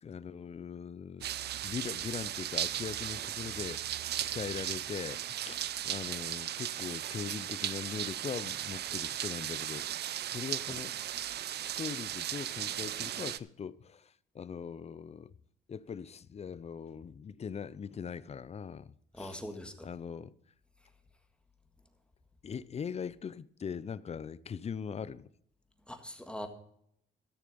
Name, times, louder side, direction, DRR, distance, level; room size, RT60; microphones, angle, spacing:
voice 1, 0.0-3.8 4.2-11.0 11.6-15.3 15.7-19.4 19.8-20.3 22.4-25.3, left 7 dB, 35° left, 0.4 m, -41 dB
sound 1, 1.2-13.4, right 11 dB, 55° right, 0.5 m, -36 dB
voice 2, 19.2-19.9 25.9-26.5, equal, 5° left, 1.7 m, -42 dB
13.5 x 6.7 x 5.2 m
cardioid pair, 90°, 20 cm